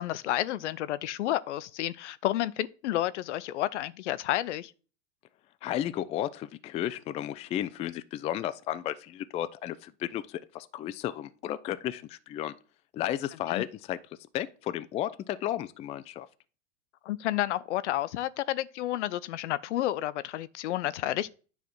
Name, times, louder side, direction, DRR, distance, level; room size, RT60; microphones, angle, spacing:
voice 1, 0.0-4.7 13.5-13.6 17.0-21.3, left 14 dB, 65° left, 0.6 m, -30 dB
voice 2, 5.6-12.5 12.9-14.0 14.3-16.3, left 12 dB, 20° left, 0.3 m, -33 dB
9.4 x 3.5 x 5.9 m
hypercardioid pair, 95°, 37 cm